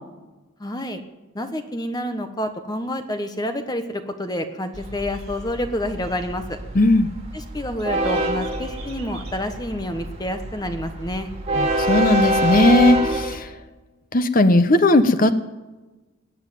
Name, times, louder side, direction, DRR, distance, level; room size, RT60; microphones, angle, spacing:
voice 1, 0.6-1.0 1.3-6.6 7.3-11.3, left 1 dB, 20° left, 7 dB, 1.1 m, -28 dB
Train, 4.7-13.4, right 1 dB, 30° right, 2.6 m, -26 dB
voice 2, 6.7-7.1 11.5-13.5 14.1-15.3, left 2 dB, 40° left, 10 dB, 0.9 m, -17 dB
20.5 x 7.4 x 9.3 m, 1.2 s
head